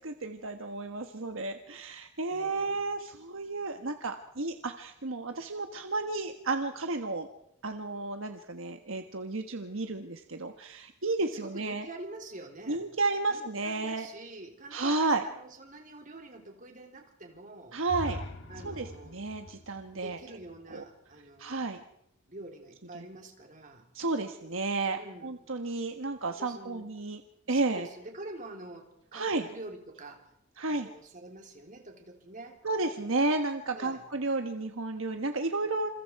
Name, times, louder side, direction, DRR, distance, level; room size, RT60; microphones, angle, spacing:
voice 1, 0.0-7.3 7.6-11.9 12.7-14.1 14.7-15.2 17.7-18.2 18.6-20.2 20.7-20.8 21.4-21.8 22.9-23.0 23.9-27.2 27.5-27.9 29.1-29.5 30.6-30.9 32.6-35.9, right 3 dB, 65° right, 6 dB, 1.4 m, -32 dB
voice 2, 2.3-2.8 11.3-12.9 13.3-17.8 18.5-19.2 19.9-21.7 22.3-23.8 24.9-25.4 26.3-26.9 27.5-30.3 30.7-32.6 33.7-34.1, right 2 dB, 40° right, 2 dB, 3.9 m, -46 dB
sound 1, 17.9-21.7, left 1 dB, 60° left, 2.1 m, -43 dB
28.0 x 28.0 x 4.8 m, 0.78 s
head